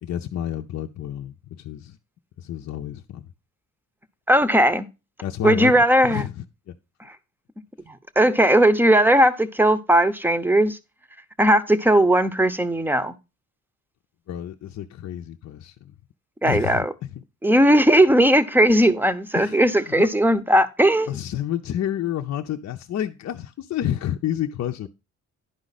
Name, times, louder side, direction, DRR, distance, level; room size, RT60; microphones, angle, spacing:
voice 1, 0.0-2.0 2.4-3.3 5.2-6.7 14.3-15.9 16.4-16.9 19.3-19.6 20.0-20.1 21.1-24.9, left 11 dB, 60° left, 0.7 m, -30 dB
voice 2, 4.3-4.9 5.4-6.2 7.9-10.8 11.4-13.1 16.4-16.9 17.4-21.1, right 1 dB, 5° right, 0.8 m, -18 dB
11.0 x 5.0 x 4.1 m
cardioid pair, 90°, 30 cm